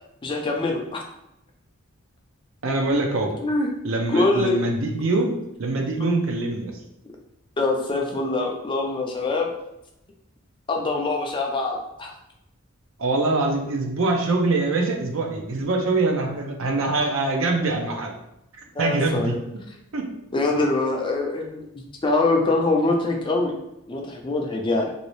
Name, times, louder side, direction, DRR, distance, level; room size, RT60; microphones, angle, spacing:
voice 1, 0.2-1.0 3.4-3.7 4.1-4.6 7.6-9.5 10.7-12.1 18.8-19.4 20.3-23.5 23.9-24.9, left 2 dB, 20° left, 1 dB, 0.4 m, -24 dB
voice 2, 2.6-3.3 3.8-6.7 13.0-18.1 18.8-19.4 19.9-20.1, right 2 dB, 65° right, 2 dB, 0.6 m, -24 dB
3.0 x 2.7 x 3.1 m, 0.86 s
head